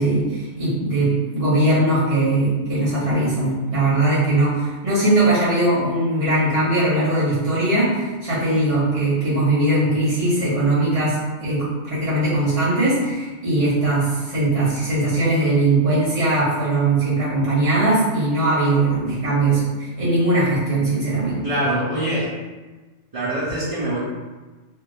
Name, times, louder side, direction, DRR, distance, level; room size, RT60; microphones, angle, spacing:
voice 1, 0.0-21.4, right 2 dB, 75° right, -9 dB, 1.9 m, -20 dB
voice 2, 21.4-22.3 23.1-24.0, right 1 dB, 40° right, -8 dB, 0.6 m, -23 dB
3.3 x 2.3 x 3.3 m, 1.2 s
omnidirectional pair, 1.2 m